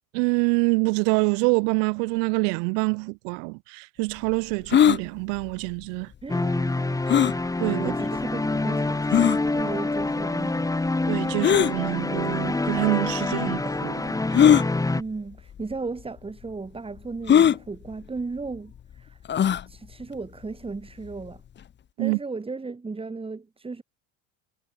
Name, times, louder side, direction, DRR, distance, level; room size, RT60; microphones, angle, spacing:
voice 1, 0.1-6.1 7.6-7.9 11.1-14.2 22.0-22.2, right 40 dB or more, 75° right, 1.2 m, -26 dB
sound 1, 4.7-5.0 7.1-7.4 8.2-8.3 9.1-9.4 11.4-11.7 12.8-12.9 14.3-14.7 15.6-15.7 16.0-16.1 17.3-17.6 19.3-19.6, left 9 dB, 30° left, 1.5 m, -18 dB
voice 2, 6.2-7.0 7.8-10.7 14.9-21.4 22.0-23.8, right 4 dB, 15° right, 7.1 m, -36 dB
sound 2, 6.3-15.0, left 2 dB, 10° left, 4.8 m, -26 dB
supercardioid pair, 125°, 38 cm